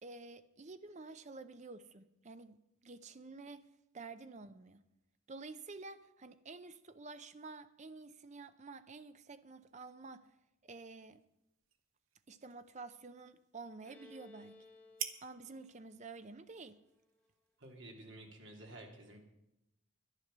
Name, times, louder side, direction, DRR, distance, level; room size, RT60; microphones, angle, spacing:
voice 1, 0.0-2.6 2.8-3.7 3.9-4.8 5.3-10.3 10.6-11.2 12.3-14.6 15.2-16.8, right 3 dB, 35° right, 0.6 m, -50 dB
sound 1, 10.7-18.4, right 9 dB, 75° right, 1.0 m, -52 dB
Bowed string instrument, 13.8-17.4, left 2 dB, 5° left, 1.8 m, -61 dB
voice 2, 17.6-19.2, right 1 dB, 60° right, 2.7 m, -52 dB
11.5 x 10.5 x 6.7 m
head